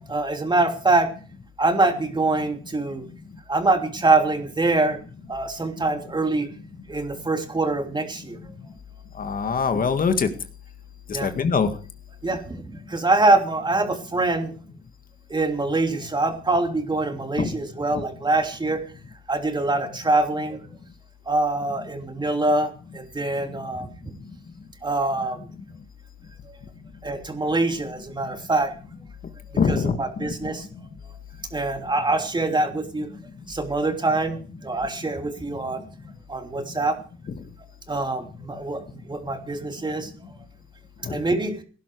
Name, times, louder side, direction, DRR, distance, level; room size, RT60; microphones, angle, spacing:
voice 1, 0.1-1.1 1.6-3.1 3.5-5.0 5.3-6.5 6.9-8.4 11.1-11.3 12.2-14.5 15.3-18.8 19.3-20.6 21.3-24.1 24.8-25.4 26.5-26.6 27.0-28.7 29.7-30.7 31.0-31.1 31.5-33.1 33.5-35.8 36.3-37.0 37.9-40.1 41.1-41.6, right 2 dB, 20° right, 5 dB, 3.1 m, -24 dB
voice 2, 9.2-10.3 11.2-11.7 17.4-17.5 29.6-30.0 41.1-41.2, left 5 dB, 45° left, 8 dB, 1.9 m, -22 dB
17.5 x 11.5 x 4.7 m, 0.38 s
cardioid pair, 90°, 20 cm